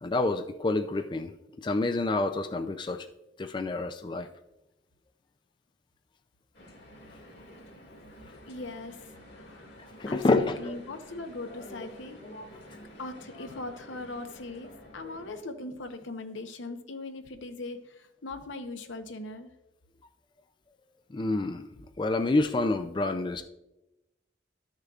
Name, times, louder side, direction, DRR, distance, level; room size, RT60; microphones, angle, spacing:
voice 1, 0.0-1.3 1.6-3.1 3.4-4.3 10.0-10.8 21.1-21.7 22.0-23.4, left 2 dB, 25° left, 7 dB, 0.3 m, -28 dB
sound 1, 6.5-15.4, equal, 65° left, 1.9 m, -49 dB
voice 2, 8.5-9.0 9.3-9.8 10.1-12.2 13.0-19.5, left 2 dB, 90° left, 7 dB, 0.8 m, -40 dB
13.5 x 6.5 x 2.4 m, 0.94 s
head